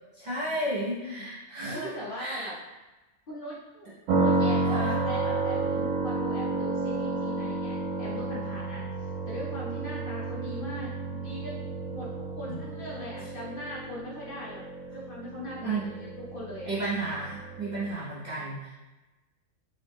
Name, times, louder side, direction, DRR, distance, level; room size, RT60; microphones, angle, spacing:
voice 1, 0.1-2.5 4.7-5.0 12.5-12.6 15.6-15.9 16.7-18.8, right 2 dB, 45° right, -8 dB, 0.6 m, -33 dB
voice 2, 1.7-2.5 3.3-3.6 4.1-14.7 14.9-16.7, equal, 55° left, -6 dB, 0.7 m, -40 dB
sound 1, 4.1-17.9, right 3 dB, 90° right, 1.0 m, -31 dB
3.8 x 2.0 x 3.4 m, 1.1 s
omnidirectional pair, 1.4 m